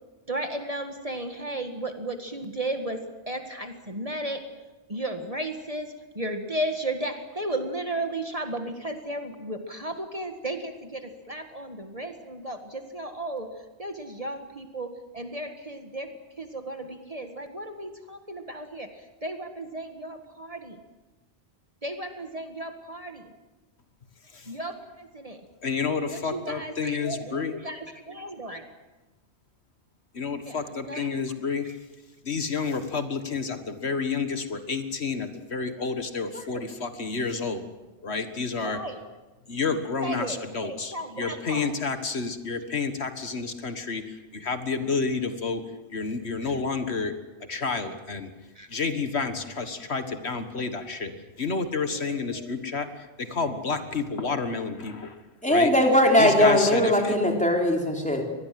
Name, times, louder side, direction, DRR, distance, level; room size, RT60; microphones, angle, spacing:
voice 1, 0.3-4.4 4.9-5.9 6.2-13.5 13.8-18.9 19.2-20.8 21.8-23.3 24.5-25.4 26.1-28.7 30.4-31.1 31.7-31.8 36.3-36.7 38.5-39.0 40.0-41.7 48.6-48.7 51.9-52.6, right 1 dB, 35° right, 6 dB, 1.9 m, -34 dB
voice 2, 25.6-27.6 30.1-31.7 32.2-37.6 38.0-38.8 39.5-45.6 45.9-47.1 47.5-48.3 48.7-51.1 51.4-55.2 55.5-55.7 56.2-57.2, left 4 dB, 70° left, 9 dB, 1.9 m, -30 dB
voice 3, 55.4-58.3, left 1 dB, 5° left, 1 dB, 4.0 m, -20 dB
24.0 x 20.0 x 7.7 m, 1.1 s
omnidirectional pair, 1.1 m